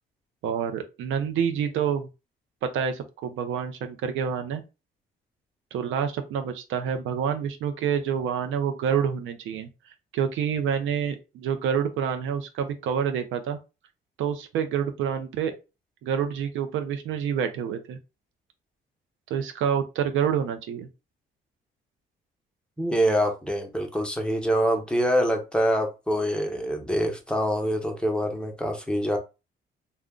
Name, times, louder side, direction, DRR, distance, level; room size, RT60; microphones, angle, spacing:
voice 1, 0.4-2.1 2.6-4.6 5.7-9.7 10.1-13.6 14.2-15.5 16.0-18.0 19.3-20.9, right 8 dB, 85° right, 7 dB, 0.5 m, -27 dB
voice 2, 22.8-29.2, equal, 5° left, 2 dB, 0.8 m, -25 dB
2.4 x 2.2 x 3.6 m, 0.28 s
cardioid pair, 90°, 20 cm